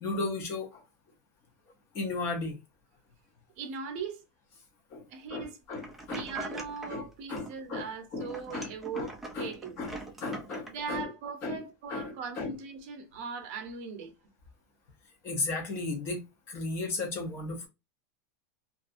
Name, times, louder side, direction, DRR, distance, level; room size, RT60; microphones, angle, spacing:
voice 1, 0.0-0.8 1.9-2.6 4.9-5.0 5.3-6.2 6.5-6.6 6.9-7.9 8.1-8.7 8.9-9.1 9.3-11.1 11.4-11.6 11.9-12.5 15.2-17.7, left 3 dB, 25° left, 0.7 m, -35 dB
voice 2, 3.6-4.2 5.1-5.6 6.1-9.8 10.7-14.1, right 5 dB, 45° right, 0.7 m, -39 dB
sound 1, 5.7-7.0 7.4-7.9 8.2-10.7, right 1 dB, 5° right, 0.4 m, -43 dB
2.6 x 2.4 x 2.4 m
supercardioid pair, 175°, 9 cm